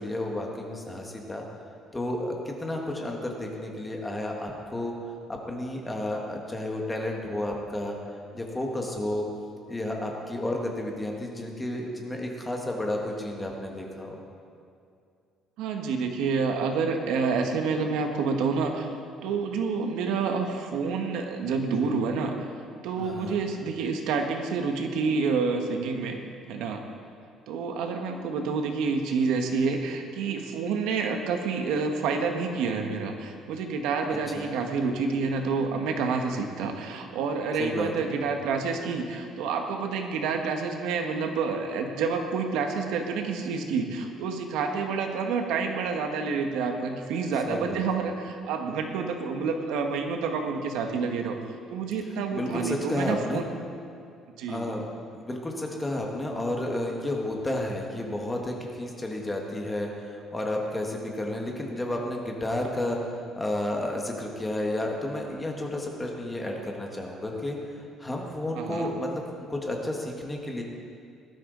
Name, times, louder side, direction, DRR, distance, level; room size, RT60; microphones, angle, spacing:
voice 1, 0.0-1.4 1.9-4.9 5.3-9.3 9.7-14.2 23.0-23.4 34.3-34.5 37.6-38.1 47.5-47.8 52.3-53.4 54.5-54.9 55.1-69.2 69.5-70.6, left 1 dB, 10° left, 0 dB, 1.5 m, -32 dB
voice 2, 15.6-18.9 19.2-22.4 22.8-26.2 26.5-26.8 27.5-51.4 51.7-53.4 54.4-54.7 68.5-68.9, right 5 dB, 85° right, 4 dB, 1.4 m, -28 dB
19.0 x 12.0 x 3.9 m, 2.4 s
cardioid pair, 175°, 0 cm